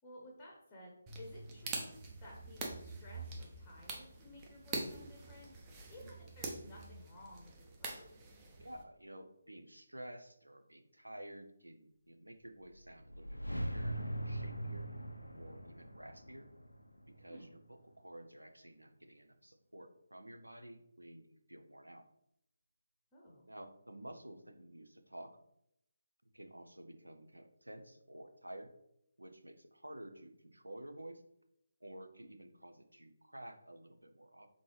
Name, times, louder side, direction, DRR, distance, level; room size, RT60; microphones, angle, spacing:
voice 1, 0.0-8.2 17.3-17.5 23.1-23.5, left 1 dB, 15° left, -3 dB, 0.8 m, -55 dB
sound 1, 1.1-8.8, right 3 dB, 15° right, 0.6 m, -45 dB
voice 2, 8.6-14.9 15.3-16.5 17.1-22.0 23.5-25.3 26.2-28.7 29.2-31.2 31.8-34.5, right 1 dB, 80° right, 7 dB, 0.6 m, -52 dB
sound 2, 12.7-17.9, right 1 dB, 80° left, 0.5 m, -42 dB
3.8 x 3.7 x 3.2 m, 0.76 s
figure-of-eight pair, 150°, 0 cm